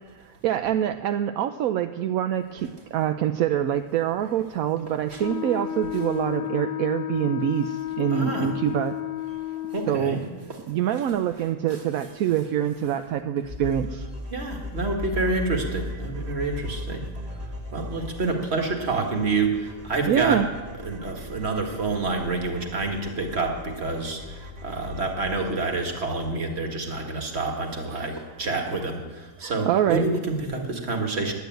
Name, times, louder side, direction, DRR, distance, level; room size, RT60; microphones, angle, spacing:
voice 1, 0.2-9.0 9.9-10.2 10.7-14.0 20.1-20.5 27.9-28.1 29.4-30.0, right 10 dB, 80° right, 8 dB, 1.0 m, -25 dB
Wind instrument woodwind instrument, 5.2-10.1, left 14 dB, 70° left, 1.1 m, -32 dB
voice 2, 8.1-8.5 9.7-10.2 10.5-10.6 11.7-11.8 14.3-20.4 20.8-31.3, right 3 dB, 45° right, 2 dB, 1.9 m, -28 dB
sound 1, 13.4-26.3, left 2 dB, 25° right, 1.5 m, -38 dB
11.0 x 9.3 x 9.0 m, 1.4 s
omnidirectional pair, 1.5 m